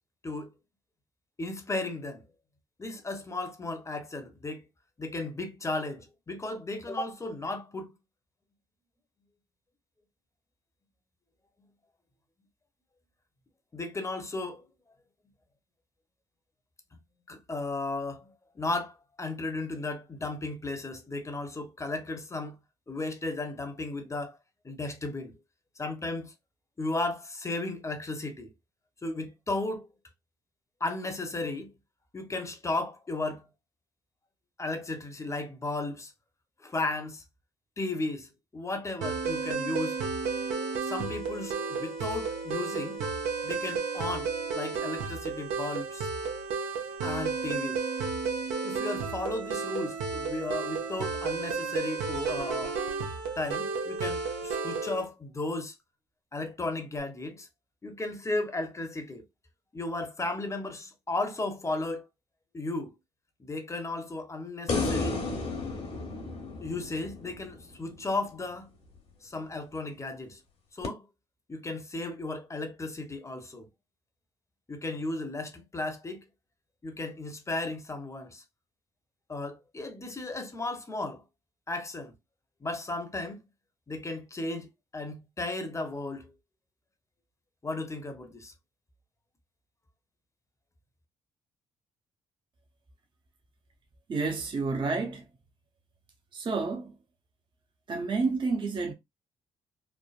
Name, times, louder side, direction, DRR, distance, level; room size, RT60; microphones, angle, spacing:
voice 1, 1.4-2.2 2.8-4.6 5.0-7.9 13.7-14.6 17.3-22.6 22.9-24.4 24.6-25.4 25.8-26.3 26.8-28.5 29.0-29.9 30.8-31.7 32.1-33.5 34.6-36.1 36.6-37.2 37.8-40.0 40.8-43.0 43.4-46.1 47.0-47.9 48.6-52.7 53.4-55.7 56.3-57.5 57.8-59.2 59.7-62.1 62.5-62.9 63.4-65.2 66.6-68.7 69.2-70.4 70.7-71.1 71.5-73.7 74.7-76.2 76.8-78.4 79.3-81.2 81.7-82.1 82.6-83.4 83.9-84.7 84.9-86.3 87.6-88.5, left 2 dB, 25° left, 0.8 m, -35 dB
sound 1, 39.0-55.0, right 4 dB, 80° right, 0.7 m, -32 dB
sound 2, 64.7-68.0 70.8-70.9, left 3 dB, 55° left, 1.1 m, -32 dB
voice 2, 94.1-95.3 96.3-96.9 97.9-98.9, right 4 dB, 40° right, 0.7 m, -30 dB
3.3 x 2.0 x 2.4 m
hypercardioid pair, 50°, 12 cm